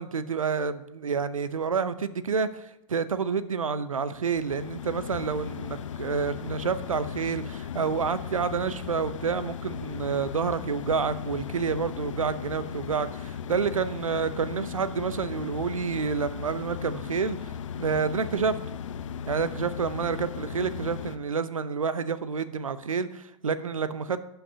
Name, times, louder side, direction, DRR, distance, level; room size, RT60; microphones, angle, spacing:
voice 1, 0.0-17.5 17.8-18.6 19.3-24.2, right 5 dB, 85° right, 0.6 m, -29 dB
sound 1, 4.2-21.2, left 8 dB, 70° left, 0.6 m, -37 dB
17.0 x 5.7 x 2.7 m
figure-of-eight pair, 95°, 17 cm